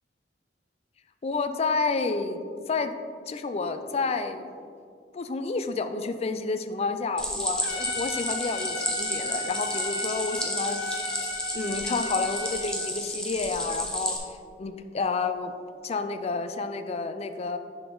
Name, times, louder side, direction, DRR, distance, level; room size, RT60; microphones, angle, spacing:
voice 1, 1.2-2.9 3.3-4.5 5.1-11.1 11.5-14.2 14.6-15.5 15.8-17.6, left 4 dB, 35° left, 9 dB, 0.4 m, -30 dB
Stream, 7.2-14.2, equal, 5° left, 0.9 m, -32 dB
Trumpet, 7.6-12.9, left 3 dB, 90° left, 0.7 m, -35 dB
6.8 x 6.0 x 3.8 m, 2.3 s
head